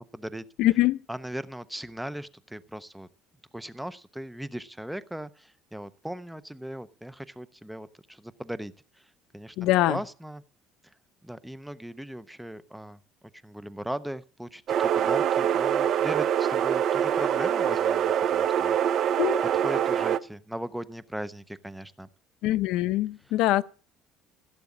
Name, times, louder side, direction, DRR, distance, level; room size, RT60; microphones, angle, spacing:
voice 1, 0.0-0.4 1.1-3.1 3.5-9.6 9.9-10.4 11.2-13.0 13.4-18.8 19.5-22.1, right 1 dB, 5° right, 0.6 m, -38 dB
voice 2, 0.6-1.0 9.6-10.0 19.2-19.4 22.4-23.6, left 16 dB, 65° left, 0.7 m, -23 dB
sound 1, 14.7-20.2, right 9 dB, 40° right, 0.7 m, -24 dB
16.0 x 8.3 x 8.4 m
cardioid pair, 170°, 0 cm